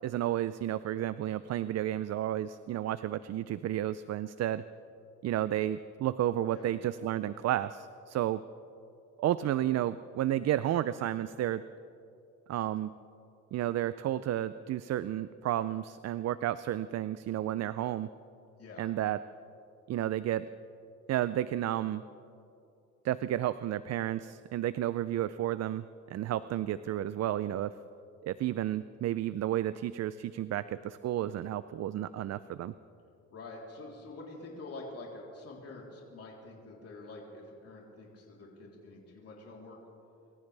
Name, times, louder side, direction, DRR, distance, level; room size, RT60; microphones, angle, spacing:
voice 1, 0.0-4.6 5.2-8.4 9.2-11.6 12.5-12.9 13.5-18.1 18.8-19.2 19.9-20.5 21.1-22.0 23.0-27.7 28.2-32.7, right 12 dB, 60° right, 15 dB, 0.5 m, -32 dB
voice 2, 18.6-18.9 33.3-39.8, left 2 dB, 50° left, -3 dB, 3.6 m, -47 dB
25.0 x 14.5 x 3.4 m, 2.6 s
cardioid pair, 90°, 30 cm